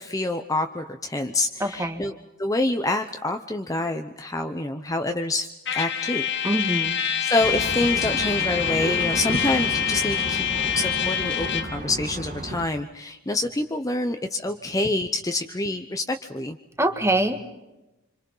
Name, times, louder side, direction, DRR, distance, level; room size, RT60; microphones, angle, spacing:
voice 1, 0.0-2.1 2.4-5.5 5.7-6.3 7.2-10.5 10.7-16.6, left 2 dB, 15° left, 6 dB, 0.8 m, -27 dB
voice 2, 1.6-2.0 6.4-7.0 16.8-17.4, right 1 dB, 10° right, 6 dB, 1.8 m, -24 dB
Trumpet, 5.6-11.8, left 9 dB, 55° left, 2.0 m, -26 dB
sound 1, 7.4-12.7, right 1 dB, 35° right, 1.9 m, -32 dB
27.5 x 26.0 x 5.6 m, 1.0 s
head